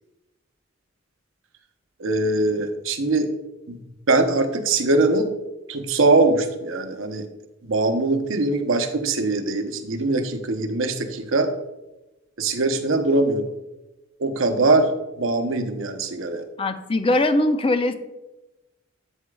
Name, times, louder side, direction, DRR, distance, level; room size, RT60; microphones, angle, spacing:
voice 1, 2.0-3.3 3.7-3.8 4.1-5.3 5.7-7.3 7.6-11.5 12.4-13.4 14.2-14.9 15.2-16.4, right 2 dB, 80° right, 7 dB, 0.8 m, -22 dB
voice 2, 16.6-17.9, left 2 dB, 25° left, 9 dB, 0.5 m, -21 dB
8.1 x 8.0 x 2.3 m, 1.0 s
head